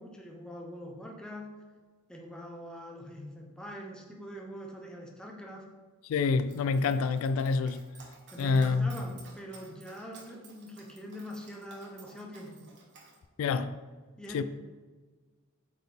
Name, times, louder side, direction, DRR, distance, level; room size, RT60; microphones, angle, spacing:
voice 1, 0.0-1.5 2.1-5.7 8.3-12.6 14.2-14.4, equal, 5° left, 0.7 m, -43 dB
voice 2, 6.1-7.8 8.4-8.9 13.4-13.7 14.3-14.4, left 4 dB, 70° left, 0.3 m, -27 dB
Dog, 6.5-13.2, right 3 dB, 55° right, 1.2 m, -54 dB
8.3 x 4.1 x 3.4 m
head